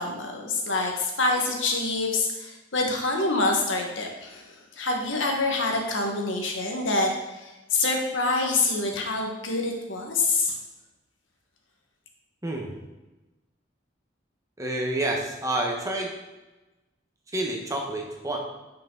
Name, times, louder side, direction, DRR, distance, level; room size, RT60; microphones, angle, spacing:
voice 1, 0.0-10.5, left 3 dB, 90° left, 1 dB, 1.6 m, -26 dB
voice 2, 14.6-16.1 17.3-18.4, right 1 dB, 15° right, 0 dB, 1.3 m, -28 dB
10.5 x 5.7 x 4.0 m, 1.1 s
head